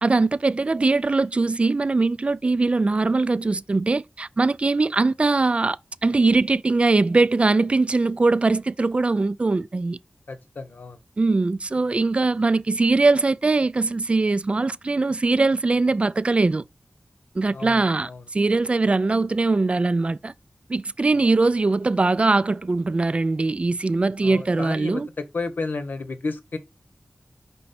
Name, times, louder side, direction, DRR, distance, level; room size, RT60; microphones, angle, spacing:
voice 1, 0.0-5.8 6.0-10.0 11.2-16.6 17.4-20.3 20.7-25.1, right 3 dB, 40° right, 0.3 m, -21 dB
voice 2, 10.3-11.0 17.5-18.2 24.2-25.0 25.3-26.6, left 3 dB, 85° left, 1.0 m, -32 dB
5.3 x 4.2 x 4.2 m
wide cardioid pair, 65°, 3 cm